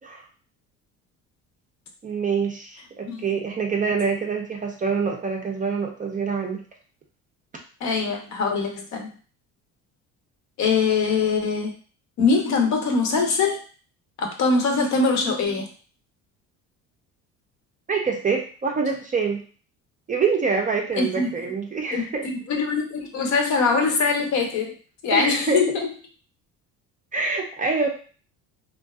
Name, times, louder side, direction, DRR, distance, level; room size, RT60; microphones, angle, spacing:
voice 1, 2.0-6.6 17.9-19.4 20.1-22.2 25.1-25.6 27.1-27.9, right 5 dB, 25° right, 2 dB, 0.4 m, -25 dB
voice 2, 7.8-9.1 10.6-11.7 12.2-13.6 14.2-15.7 21.0-21.3 21.9-22.0 22.5-24.7 25.0-25.9, left 4 dB, 55° left, 3 dB, 0.7 m, -22 dB
2.5 x 2.2 x 2.3 m, 0.40 s
cardioid pair, 100°, 33 cm